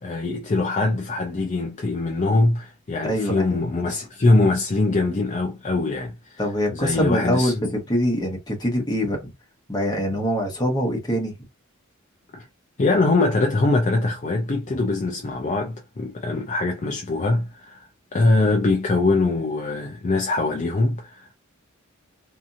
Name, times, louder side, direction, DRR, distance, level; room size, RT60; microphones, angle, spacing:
voice 1, 0.0-6.4 6.7-7.7 12.3-12.5 12.8-17.9 18.1-21.3, left 2 dB, 35° left, 0.4 m, -22 dB
voice 2, 3.0-3.6 6.4-7.6 7.9-9.3 9.7-11.3 14.7-14.8, equal, 20° left, 1.0 m, -24 dB
2.8 x 2.6 x 2.5 m
head